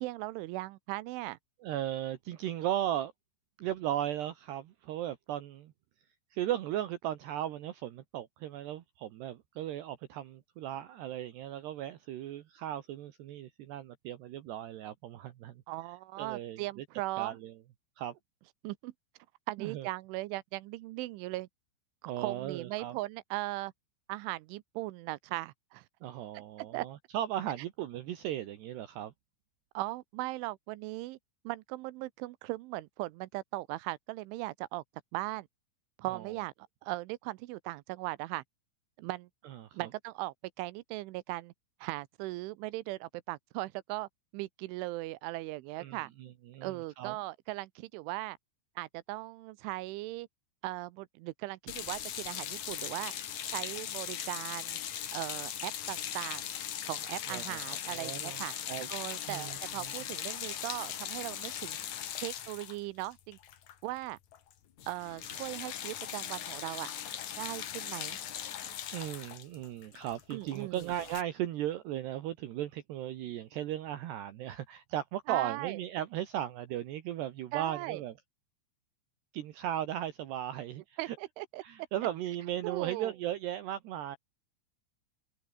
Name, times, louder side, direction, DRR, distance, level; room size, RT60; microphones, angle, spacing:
voice 1, 0.0-1.4 15.7-17.4 18.6-18.9 19.5-21.5 22.0-23.7 24.1-25.8 26.3-26.4 26.7-26.9 29.7-31.2 31.4-34.8 35.1-35.5 36.0-36.5 36.8-38.4 39.0-39.3 39.7-41.5 41.8-46.1 46.6-48.4 48.8-50.3 50.6-53.1 53.5-54.8 55.1-56.5 56.8-58.5 58.9-61.8 62.2-63.4 63.8-64.2 64.9-66.9 67.4-68.2 70.3-70.9 75.3-75.8 77.5-78.0 81.0-81.6 82.6-83.1, right 19 dB, 85° right, 3.2 m, -38 dB
voice 2, 1.6-3.1 3.6-5.7 6.3-15.6 16.2-16.8 17.2-17.5 18.0-18.2 19.6-19.9 22.1-22.9 26.0-29.1 36.1-36.3 39.4-39.9 45.8-47.1 57.3-58.9 59.3-59.9 68.9-78.1 79.3-81.2 81.6-84.2, right 12 dB, 70° right, 3.2 m, -37 dB
sound 1, 51.7-64.0 64.3-64.5 64.8-71.2, left 10 dB, 55° left, 2.1 m, -39 dB
omnidirectional pair, 5.6 m